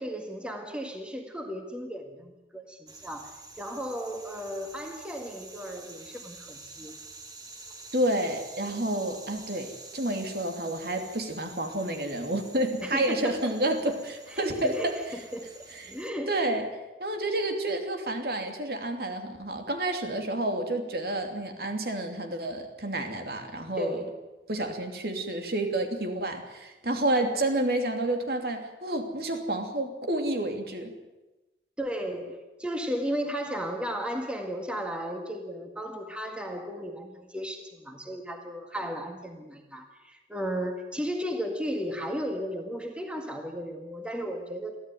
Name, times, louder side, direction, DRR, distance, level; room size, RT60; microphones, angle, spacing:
voice 1, 0.0-6.9 12.8-13.5 14.3-15.0 15.3-16.5 23.8-24.2 31.8-44.8, equal, 5° right, 3 dB, 1.9 m, -35 dB
sound 1, 2.9-16.1, right 3 dB, 20° right, 2.3 m, -48 dB
voice 2, 7.9-15.0 15.7-15.9 16.3-16.7 17.0-24.0 24.5-30.9, right 1 dB, 60° right, 5 dB, 2.9 m, -30 dB
24.0 x 15.0 x 9.4 m, 1.1 s
head